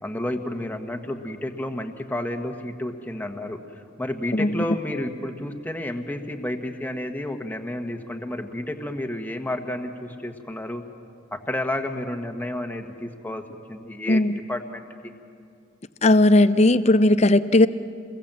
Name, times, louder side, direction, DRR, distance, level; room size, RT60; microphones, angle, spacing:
voice 1, 0.0-3.6 4.0-10.8 11.3-13.4 13.7-14.2 14.5-15.1, left 1 dB, 10° left, 4 dB, 1.4 m, -31 dB
voice 2, 4.3-4.6 14.1-14.4 16.0-17.7, left 2 dB, 35° left, 13 dB, 0.6 m, -17 dB
28.5 x 22.0 x 7.6 m, 2.4 s
head